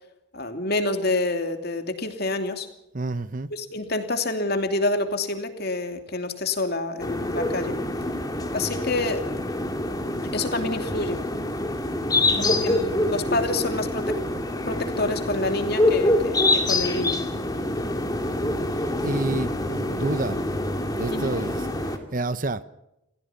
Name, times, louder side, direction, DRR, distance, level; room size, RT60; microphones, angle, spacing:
voice 1, 0.3-2.7 3.5-7.7 8.5-9.2 10.3-11.2 12.3-14.2 14.7-17.2 21.1-21.3, left 2 dB, 50° left, 2.9 m, -27 dB
voice 2, 2.9-3.5 8.6-8.7 12.2-13.1 19.0-20.4 21.0-22.6, right 2 dB, 40° right, 0.9 m, -30 dB
sound 1, 7.0-22.0, left 1 dB, 20° left, 2.4 m, -26 dB
29.0 x 16.0 x 5.9 m
head